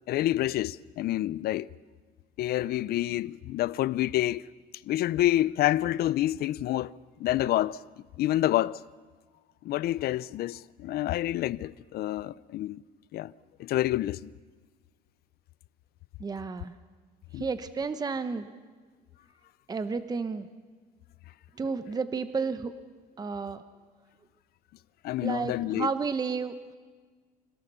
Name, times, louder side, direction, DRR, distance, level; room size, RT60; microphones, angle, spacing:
voice 1, 0.1-1.7 2.4-4.5 4.9-7.8 8.2-8.8 9.6-12.8 13.1-13.3 13.6-14.3 17.3-17.4 25.0-25.9, left 14 dB, 65° left, 0.5 m, -28 dB
voice 2, 16.2-16.8 17.3-18.5 19.7-20.5 21.6-22.7 23.2-23.6 25.2-26.7, right 5 dB, 25° right, 0.9 m, -32 dB
26.5 x 17.0 x 6.9 m
cardioid pair, 110°, 17 cm